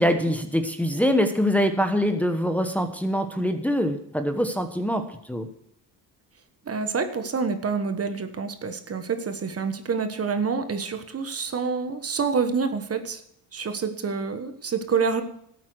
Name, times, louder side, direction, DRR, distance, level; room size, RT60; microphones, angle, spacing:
voice 1, 0.0-5.5, equal, 5° left, 6 dB, 1.2 m, -24 dB
voice 2, 6.6-13.2 13.5-15.2, right 5 dB, 35° right, 9 dB, 1.4 m, -27 dB
12.5 x 8.7 x 6.4 m, 0.72 s
cardioid pair, 90°, 41 cm